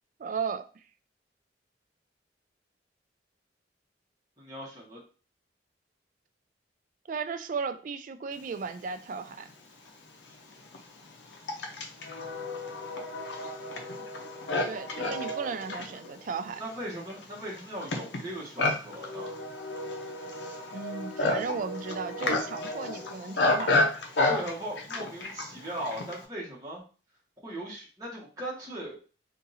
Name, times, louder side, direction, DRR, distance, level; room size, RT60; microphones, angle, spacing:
voice 1, 0.2-0.7 7.1-9.5 14.6-16.6 20.7-23.8, right 5 dB, 45° right, 9 dB, 0.3 m, -35 dB
voice 2, 4.4-5.0 16.6-19.3 24.3-26.8 27.4-29.0, right 1 dB, 20° right, -6 dB, 1.1 m, -38 dB
Livestock farm animals working animals, 9.5-9.6 10.3-26.3, left 2 dB, 75° left, 0.6 m, -31 dB
2.7 x 2.5 x 4.0 m, 0.36 s
head